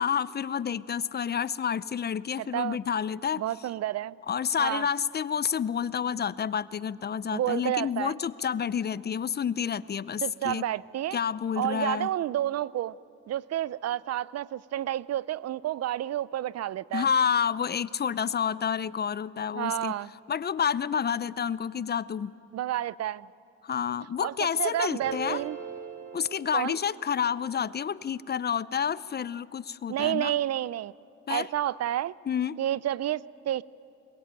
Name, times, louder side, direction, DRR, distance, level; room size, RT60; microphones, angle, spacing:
voice 1, 0.0-3.4 4.3-10.6 11.1-12.1 16.9-19.9 20.3-22.3 23.6-25.4 26.1-30.4 31.3-31.5 32.3-32.6, left 7 dB, 35° left, 18 dB, 0.5 m, -29 dB
voice 2, 2.4-2.8 3.4-4.2 4.6-4.9 7.3-8.1 10.2-11.2 11.6-12.9 13.3-17.1 19.6-20.1 22.5-23.3 24.2-24.3 24.6-25.6 26.5-26.8 29.9-30.9 31.3-32.1 32.6-33.6, right 12 dB, 55° right, 21 dB, 0.5 m, -30 dB
sound 1, 25.0-27.3, right 5 dB, 85° right, 4.9 m, -40 dB
22.0 x 21.0 x 8.9 m, 2.6 s
cardioid pair, 90°, 30 cm